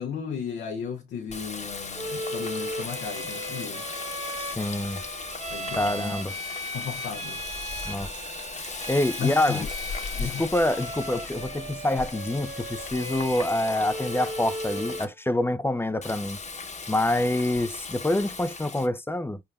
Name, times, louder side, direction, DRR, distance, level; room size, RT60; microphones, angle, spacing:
voice 1, 0.0-3.8 5.5-6.2 6.7-7.4 9.2-9.7 10.2-10.4, left 7 dB, 80° left, 0.7 m, -34 dB
Water tap faucet, 1.3-15.1 16.0-18.9, left 4 dB, 40° left, 1.0 m, -37 dB
Bowed string instrument, 1.9-15.1, right 1 dB, 35° right, 1.1 m, -37 dB
voice 2, 4.4-5.0 5.8-6.3 7.8-8.1 8.9-9.7 10.2-16.4 16.9-19.4, left 1 dB, 10° left, 0.5 m, -26 dB
4.4 x 3.4 x 2.3 m
supercardioid pair, 40°, 18 cm